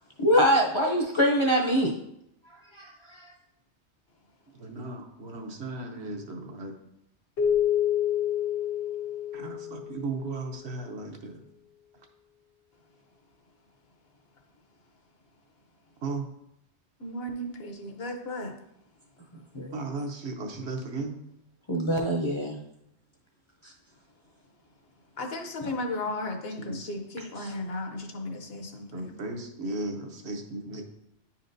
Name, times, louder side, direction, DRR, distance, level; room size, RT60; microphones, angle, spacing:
voice 1, 0.2-2.0 2.7-3.3 19.5-19.8 21.7-22.6 23.6-23.7 25.6-25.7 27.4-27.5, equal, 35° left, -1 dB, 0.5 m, -24 dB
voice 2, 4.5-6.7 9.3-11.4 16.0-16.3 19.7-21.2 26.6-26.8 28.9-30.9, right 3 dB, 70° right, 3 dB, 1.1 m, -36 dB
Keyboard (musical), 7.4-10.3, left 9 dB, 85° left, 1.3 m, -28 dB
voice 3, 17.0-18.5 25.2-29.1, left 2 dB, 65° left, 4 dB, 1.0 m, -35 dB
9.5 x 4.2 x 2.6 m, 0.79 s
omnidirectional pair, 1.1 m